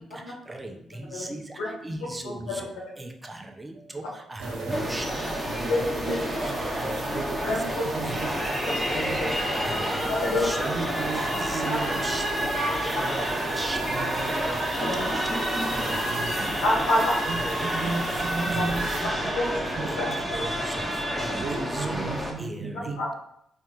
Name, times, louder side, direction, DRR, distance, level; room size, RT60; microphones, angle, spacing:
voice 1, 1.8-2.3 3.0-3.1 3.9-4.0 4.3-5.0 5.6-5.8 6.1-6.5 6.8-7.2 8.0-8.2 9.3-9.4 9.6-9.8 10.4-10.8 11.2-11.6 12.0-12.2 13.0-13.2 13.6-13.8 14.3-14.6 15.7-16.0 16.4-16.5 17.5-17.6 18.5-18.7 19.5-20.0 20.4-20.5 21.2-22.0 22.4-23.0, right 2 dB, 25° right, 3 dB, 0.6 m, -36 dB
sound 1, 4.4-19.0, right 2 dB, 75° right, 0.9 m, -37 dB
sound 2, 4.7-22.3, equal, 5° left, 1.1 m, -29 dB
voice 2, 5.7-6.2 7.4-7.8 8.6-9.3 10.1-10.4 11.7-11.8 14.8-15.0 16.6-17.1 18.5-18.6 19.3-20.4 23.0-23.1, left 1 dB, 85° left, -4 dB, 1.0 m, -27 dB
voice 3, 6.5-8.6 8.9-9.2 10.6-12.3 13.3-14.4 15.9-16.3 17.3-19.1 19.5-20.2 21.4-23.0, right 5 dB, 60° right, 8 dB, 0.3 m, -36 dB
4.2 x 3.5 x 2.4 m, 0.74 s
hypercardioid pair, 45°, 0 cm